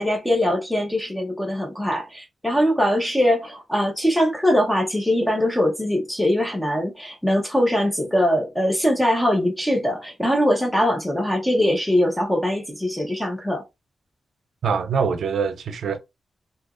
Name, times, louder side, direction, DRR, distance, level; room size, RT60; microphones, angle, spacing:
voice 1, 0.0-13.6, equal, 5° left, 0.8 m, -22 dB
voice 2, 14.6-16.0, right 6 dB, 85° right, 0.6 m, -24 dB
2.8 x 2.5 x 3.6 m
wide cardioid pair, 180°, 0 cm